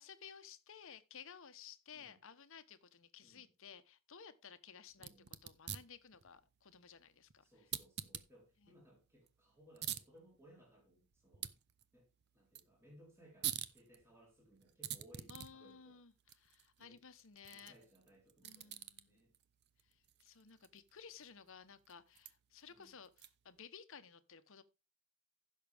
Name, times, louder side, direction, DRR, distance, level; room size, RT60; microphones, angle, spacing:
voice 1, 0.0-5.1 5.4-7.5 8.6-8.7 15.3-17.8 18.4-19.2 19.9-24.6, left 7 dB, 65° left, 1.0 m, -56 dB
sound 1, 4.9-23.6, right 11 dB, 50° right, 0.8 m, -50 dB
voice 2, 5.0-5.3 7.4-11.5 11.9-12.1 12.3-16.0 16.8-17.0 17.5-19.3 22.7-23.0, right 1 dB, 10° right, 3.9 m, -64 dB
15.5 x 6.6 x 3.5 m
head